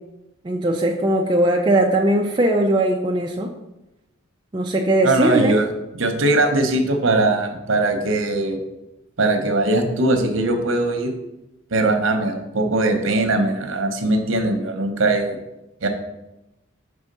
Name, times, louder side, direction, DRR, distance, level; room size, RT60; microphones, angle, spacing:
voice 1, 0.4-3.5 4.5-5.6, right 1 dB, 20° right, 0 dB, 0.4 m, -19 dB
voice 2, 5.0-8.6 9.2-11.1 11.7-15.4 15.8-15.9, right 2 dB, 75° right, 6 dB, 0.8 m, -20 dB
5.5 x 3.5 x 5.2 m, 0.93 s
head